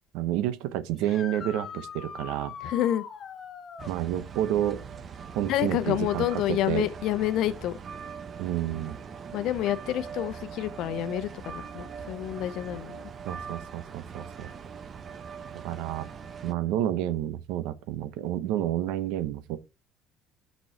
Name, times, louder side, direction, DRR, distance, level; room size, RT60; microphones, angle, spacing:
voice 1, 0.1-2.5 3.9-4.8 5.3-6.4 6.7-6.9 8.4-9.0 13.2-14.5 15.6-16.1 16.4-19.6, right 12 dB, 75° right, 0.8 m, -29 dB
sound 1, 1.0-4.0 7.3-7.4 9.4-9.5 15.7-15.8, left 6 dB, 45° left, 1.3 m, -41 dB
voice 2, 2.6-3.0 5.5-7.8 9.3-13.0, left 13 dB, 70° left, 0.8 m, -28 dB
sound 2, 3.8-16.5, right 6 dB, 45° right, 0.9 m, -41 dB
6.1 x 5.4 x 4.5 m
supercardioid pair, 75°, 0 cm